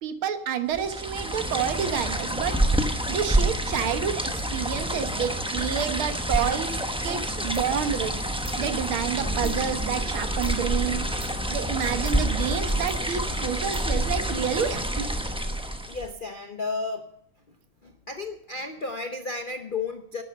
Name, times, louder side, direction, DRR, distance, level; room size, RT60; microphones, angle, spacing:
voice 1, 0.0-2.6 3.1-6.7 7.0-8.1 8.6-11.0 11.5-15.0, right 8 dB, 80° right, 9 dB, 2.1 m, -29 dB
sound 1, 0.7-16.1, right 1 dB, 5° right, 0.4 m, -28 dB
sound 2, 6.7-14.7, right 1 dB, 25° right, 4.8 m, -44 dB
voice 2, 15.9-17.1 17.8-20.2, left 3 dB, 75° left, 7 dB, 0.4 m, -33 dB
11.5 x 11.0 x 6.5 m, 0.72 s
omnidirectional pair, 2.3 m